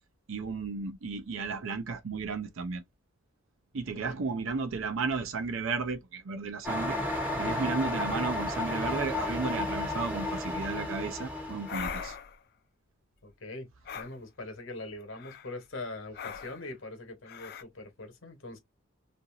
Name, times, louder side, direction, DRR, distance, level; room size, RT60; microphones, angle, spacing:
voice 1, 0.3-2.8 3.7-7.0 7.4-12.2, right 4 dB, 80° right, 0.5 m, -34 dB
sound 1, 6.6-12.0, left 1 dB, 10° right, 0.6 m, -32 dB
voice 2, 7.3-7.6 13.2-13.7 13.9-18.6, left 2 dB, 75° left, 1.0 m, -42 dB
sound 2, 11.7-12.4 13.9-14.1 15.1-15.5 16.1-16.7 17.3-17.6, left 7 dB, 50° left, 0.3 m, -40 dB
2.8 x 2.5 x 2.4 m
head